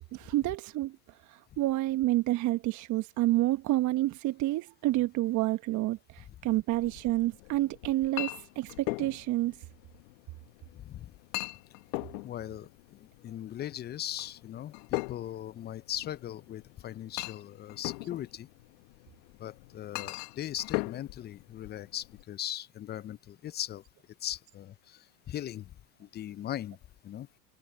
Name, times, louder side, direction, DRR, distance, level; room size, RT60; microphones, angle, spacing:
voice 1, 0.1-1.0 1.2-9.6, right 17 dB, 35° right, 1.2 m, -29 dB
Chink clink, 6.7-22.2, left 27 dB, 55° left, 1.6 m, -41 dB
voice 2, 10.7-11.1 12.2-18.5 19.4-23.8 24.2-25.7 26.0-26.8 27.0-27.3, left 12 dB, 20° left, 0.7 m, -39 dB
hypercardioid pair, 105°, 47 cm